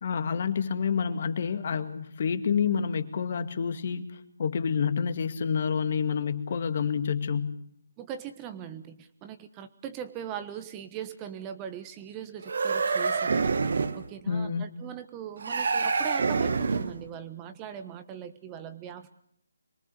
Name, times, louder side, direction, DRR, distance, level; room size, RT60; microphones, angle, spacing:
voice 1, 0.0-7.6 14.3-14.7, left 6 dB, 45° left, 10 dB, 2.0 m, -28 dB
voice 2, 8.0-13.6 13.9-19.1, right 9 dB, 20° right, 10 dB, 1.3 m, -40 dB
sound 1, 12.4-14.1 15.4-17.0, right 4 dB, 55° right, 1.6 m, -27 dB
26.0 x 23.0 x 6.9 m, 0.69 s
figure-of-eight pair, 150°, 0 cm